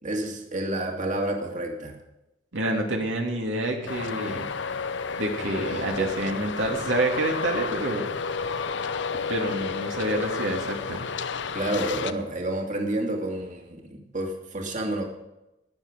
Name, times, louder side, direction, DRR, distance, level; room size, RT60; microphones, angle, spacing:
voice 1, 0.0-2.0 11.5-15.0, right 1 dB, 40° right, 1 dB, 2.3 m, -29 dB
voice 2, 2.5-4.5 5.2-8.1 9.3-11.1, right 1 dB, 85° right, 2 dB, 2.5 m, -28 dB
Traffic noise roadway noise, 3.9-12.1, left 5 dB, 70° left, 0.7 m, -31 dB
19.5 x 7.0 x 5.2 m, 0.91 s
head